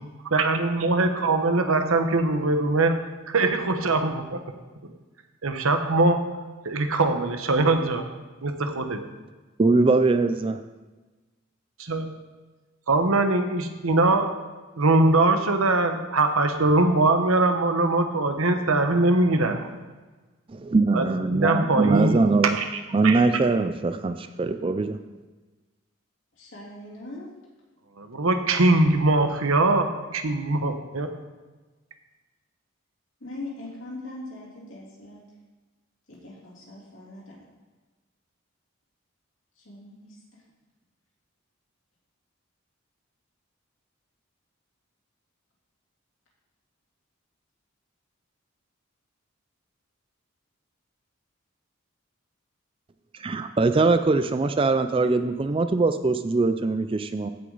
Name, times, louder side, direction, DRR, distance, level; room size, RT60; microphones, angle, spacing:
voice 1, 0.3-2.9 3.3-4.4 5.4-6.2 6.6-8.1 8.4-9.0 11.8-12.1 12.9-14.3 14.8-19.7 20.9-21.1 21.3-23.2 28.0-31.1, right 2 dB, 85° right, 6 dB, 1.1 m, -22 dB
voice 2, 9.6-10.6 20.5-22.6 22.9-25.0 53.2-57.3, right 3 dB, 25° right, 9 dB, 0.4 m, -22 dB
voice 3, 21.6-22.1 26.4-27.3 33.2-35.2 36.1-37.4 39.6-40.4, left 2 dB, 65° left, -5 dB, 3.4 m, -41 dB
15.5 x 6.2 x 4.0 m, 1.3 s
head